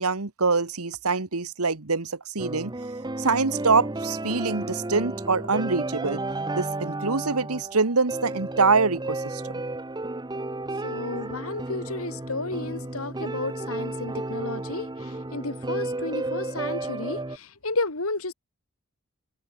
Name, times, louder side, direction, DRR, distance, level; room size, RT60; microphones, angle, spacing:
voice 1, 0.0-2.7 3.2-6.2 6.5-9.4, right 4 dB, 85° right, 1.6 m, -24 dB
sound 1, 2.4-17.4, right 2 dB, 20° right, 1.1 m, -32 dB
voice 2, 10.8-18.3, left 2 dB, 75° left, 3.5 m, -32 dB
head